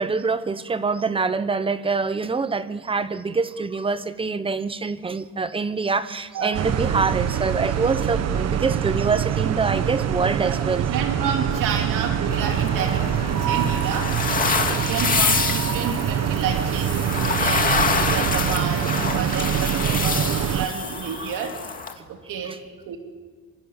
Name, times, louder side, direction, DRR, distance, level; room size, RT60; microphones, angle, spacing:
voice 1, 0.0-10.9 12.8-12.9 13.3-13.5 17.0-17.1 21.2-21.3 22.5-22.6, right 4 dB, 15° right, 13 dB, 0.9 m, -25 dB
sound 1, 6.5-20.7, right 9 dB, 55° right, 1.3 m, -24 dB
voice 2, 10.9-21.6 22.1-22.5 22.9-23.0, right 7 dB, 85° right, 3 dB, 2.7 m, -30 dB
sound 2, 12.3-21.9, left 5 dB, 25° left, 2.1 m, -26 dB
28.0 x 25.0 x 7.2 m, 1.5 s
cardioid pair, 160°, 31 cm